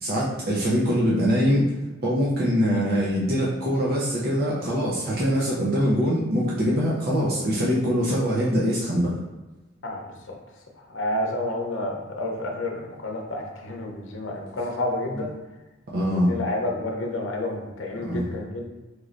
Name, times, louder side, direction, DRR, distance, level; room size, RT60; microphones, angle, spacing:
voice 1, 0.0-1.7 2.0-9.1 15.9-16.3 18.0-18.3, equal, 50° right, -5 dB, 0.7 m, -23 dB
voice 2, 10.9-15.3 16.1-18.7, left 1 dB, 70° left, 1 dB, 0.7 m, -30 dB
4.6 x 3.1 x 2.5 m, 1.1 s
head